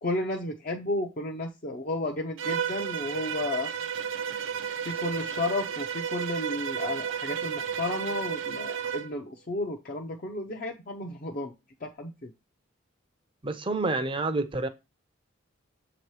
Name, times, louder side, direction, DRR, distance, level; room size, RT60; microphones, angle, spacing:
voice 1, 0.0-3.7 4.8-11.5 11.8-12.3, left 2 dB, 45° left, 0.6 m, -33 dB
Bowed string instrument, 2.4-9.1, right 7 dB, 70° right, 0.5 m, -32 dB
voice 2, 13.4-14.7, right 2 dB, 25° right, 0.6 m, -28 dB
7.2 x 2.9 x 4.7 m
head